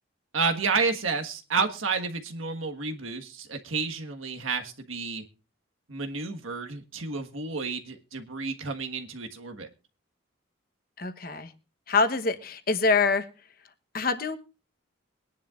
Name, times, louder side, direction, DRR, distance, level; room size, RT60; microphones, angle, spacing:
voice 1, 0.3-5.2 5.9-9.7, right 4 dB, 85° right, 5 dB, 1.5 m, -30 dB
voice 2, 11.0-11.5 11.9-13.3 13.9-14.4, left 4 dB, 45° left, 9 dB, 1.0 m, -25 dB
22.5 x 10.5 x 2.5 m, 0.31 s
head